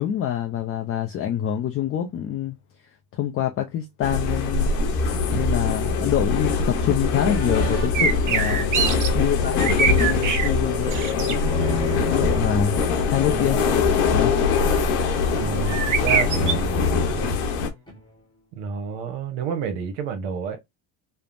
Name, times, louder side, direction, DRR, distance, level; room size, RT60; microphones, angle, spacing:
voice 1, 0.0-2.6 3.1-4.7 5.3-8.8 9.1-12.8 13.1-13.6 14.1-14.3, left 10 dB, 30° left, 0.4 m, -26 dB
sound 1, 4.0-17.7, left 4 dB, 85° left, 1.0 m, -23 dB
sound 2, 7.3-12.5 13.2-13.7 14.3-15.8 16.1-18.1, left 2 dB, 10° left, 0.9 m, -33 dB
sound 3, 7.9-9.1 9.4-10.5 10.9-11.4 15.7-16.5, right 6 dB, 40° right, 0.7 m, -23 dB
voice 2, 15.3-17.4 18.5-20.6, right 6 dB, 80° right, 0.8 m, -30 dB
3.3 x 2.0 x 2.4 m
cardioid pair, 115°, 47 cm